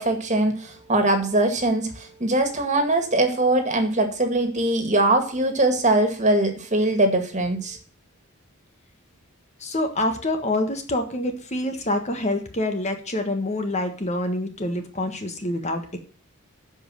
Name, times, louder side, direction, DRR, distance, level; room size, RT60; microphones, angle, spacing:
voice 1, 0.0-7.8, right 2 dB, 30° right, 6 dB, 2.1 m, -22 dB
voice 2, 9.6-16.0, left 1 dB, 30° left, 6 dB, 1.4 m, -26 dB
12.0 x 5.4 x 7.5 m, 0.41 s
head